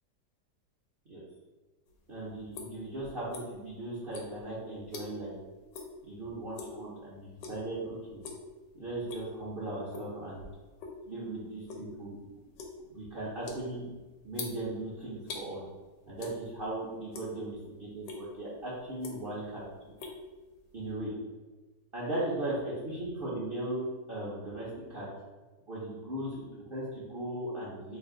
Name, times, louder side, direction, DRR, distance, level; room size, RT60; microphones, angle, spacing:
sound 1, 1.9-3.7 4.1-5.4 5.7-6.0 6.3-6.8 7.4-7.7 8.1-8.5 8.9-9.4 9.9-11.0 11.3-15.5 16.2-16.7 17.0-17.6 18.0-18.2 18.8-19.5 19.7-20.9, left 4 dB, 90° left, 1.3 m, -44 dB
voice 1, 2.1-5.3 6.1-8.2 8.7-10.4 11.1-12.2 12.9-13.9 14.2-15.6 16.1-19.6 20.7-21.1 21.9-25.1 25.7-28.0, right 1 dB, 50° right, -8 dB, 0.7 m, -37 dB
3.3 x 2.6 x 3.7 m, 1.3 s
omnidirectional pair, 1.9 m